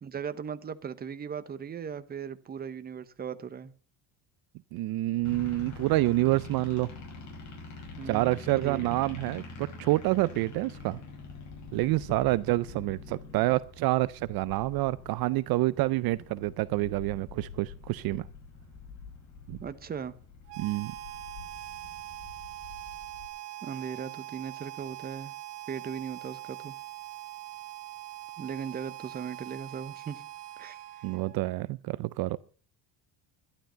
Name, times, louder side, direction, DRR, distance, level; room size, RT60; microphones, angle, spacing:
voice 1, 0.0-3.7 8.0-8.3 8.6-9.0 19.6-20.1 23.6-25.3 25.7-26.7 28.4-30.2 30.6-30.8, right 7 dB, 20° right, 0.8 m, -38 dB
voice 2, 4.7-6.9 8.0-11.0 11.7-18.3 19.5-19.6 20.6-20.9 31.0-32.4, right 18 dB, 60° right, 0.5 m, -28 dB
sound 1, 5.2-23.3, left 4 dB, 40° left, 5.8 m, -46 dB
Harmonica, 20.5-31.5, right 16 dB, 75° right, 1.8 m, -43 dB
12.0 x 12.0 x 5.5 m
cardioid pair, 145°, 43 cm